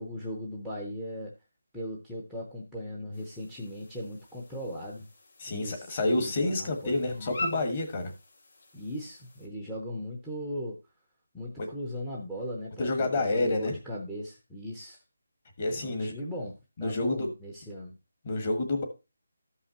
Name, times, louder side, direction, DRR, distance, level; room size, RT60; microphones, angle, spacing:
voice 1, 0.0-1.3 1.7-5.1 5.5-7.6 8.7-10.8 11.3-15.0 15.7-16.5 16.8-18.0, equal, ahead, -1 dB, 0.7 m, -38 dB
sound 1, 3.1-9.5, left 2 dB, 50° left, 2.4 m, -43 dB
voice 2, 5.4-8.1 11.6-11.7 12.8-13.7 15.6-16.1 16.8-17.3 18.2-18.8, left 2 dB, 25° left, 4 dB, 1.5 m, -28 dB
13.5 x 5.6 x 2.8 m, 0.26 s
hypercardioid pair, 175°, 0 cm